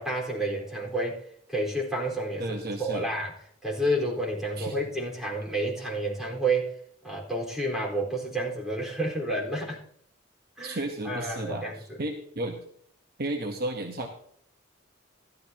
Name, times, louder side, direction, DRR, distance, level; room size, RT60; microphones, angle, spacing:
voice 1, 0.0-3.3 3.6-6.7 7.0-9.8 10.6-12.0, right 1 dB, ahead, -4 dB, 4.2 m, -30 dB
voice 2, 2.4-3.1 4.6-4.8 10.6-12.6 13.2-14.1, right 1 dB, 45° right, 3 dB, 1.1 m, -33 dB
14.5 x 12.0 x 2.9 m, 0.66 s
head